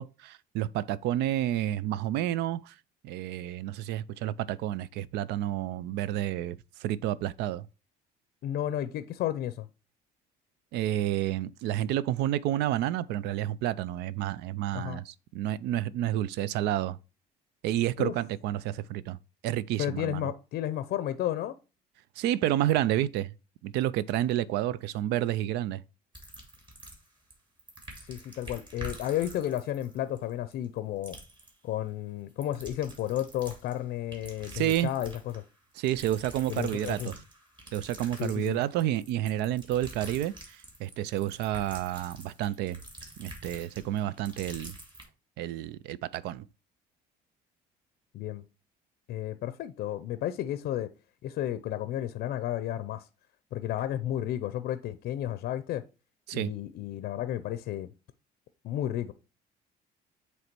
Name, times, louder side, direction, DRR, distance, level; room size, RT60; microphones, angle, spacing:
voice 1, 0.0-2.7 3.0-7.7 10.7-17.0 17.6-19.2 19.4-20.3 22.2-23.3 23.6-25.8 34.5-34.9 35.8-37.1 37.7-42.8 43.2-44.8 45.4-46.4 56.3-56.5, right 13 dB, 85° right, 0.4 m, -30 dB
voice 2, 8.4-9.7 14.7-15.0 18.0-18.1 19.8-21.5 28.0-31.2 31.6-35.4 36.5-37.1 38.2-38.6 48.1-48.4 49.1-50.9 51.2-53.1 53.5-55.8 56.3-57.9 58.6-59.1, left 12 dB, 70° left, 0.5 m, -32 dB
sound 1, 26.1-27.3 27.6-30.8 31.0-31.5 32.3-33.8 34.1-35.4 35.8-45.0, right 1 dB, 30° right, 2.6 m, -47 dB
7.9 x 3.2 x 4.5 m
cardioid pair, 110°, 17 cm